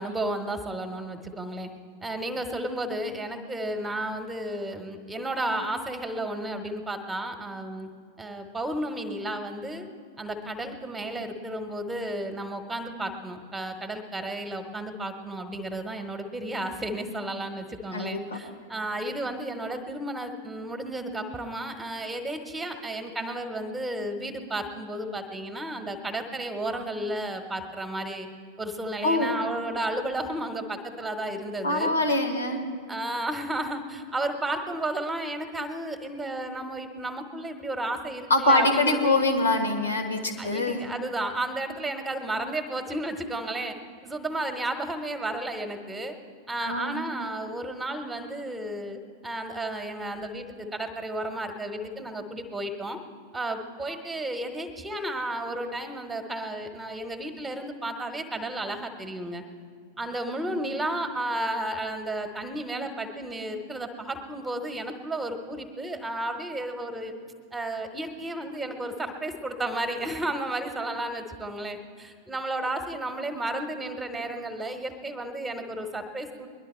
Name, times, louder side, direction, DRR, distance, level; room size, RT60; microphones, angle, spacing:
voice 1, 0.0-1.7 2.0-7.9 8.2-9.9 10.2-28.3 28.6-31.9 32.9-39.2 40.4-43.8 44.0-46.1 46.5-53.0 53.3-59.4 60.0-67.1 67.5-76.5, right 1 dB, 10° right, 6 dB, 1.3 m, -33 dB
voice 2, 17.9-18.4 29.0-29.3 31.6-32.6 38.3-40.8 46.6-47.0 60.3-60.6, left 2 dB, 70° left, 6 dB, 1.6 m, -24 dB
20.5 x 11.5 x 4.4 m, 2.1 s
figure-of-eight pair, 90°, 0 cm